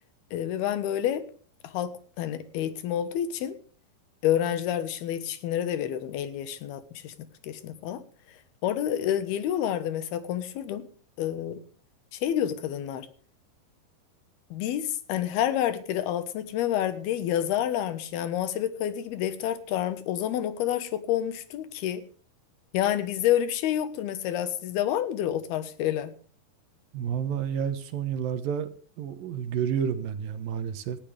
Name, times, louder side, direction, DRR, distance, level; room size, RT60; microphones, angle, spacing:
voice 1, 0.3-1.2 1.6-3.6 4.2-7.1 7.4-8.0 8.6-10.8 11.2-11.6 12.1-13.1 14.5-22.0 22.7-26.1, left 11 dB, 85° left, 12 dB, 3.2 m, -28 dB
voice 2, 26.9-28.7 29.0-31.0, right 8 dB, 70° right, 10 dB, 2.8 m, -30 dB
19.5 x 14.5 x 3.5 m, 0.42 s
omnidirectional pair, 4.5 m